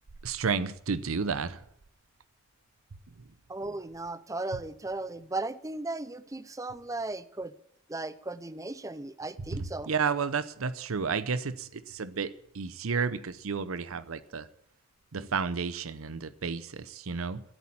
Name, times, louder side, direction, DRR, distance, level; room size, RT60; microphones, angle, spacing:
voice 1, 0.2-1.6 9.5-14.5 15.1-17.4, right 5 dB, 80° right, 0.7 m, -32 dB
voice 2, 3.5-7.5 7.9-9.9, right 2 dB, 15° right, 0.6 m, -36 dB
13.5 x 8.7 x 8.6 m
head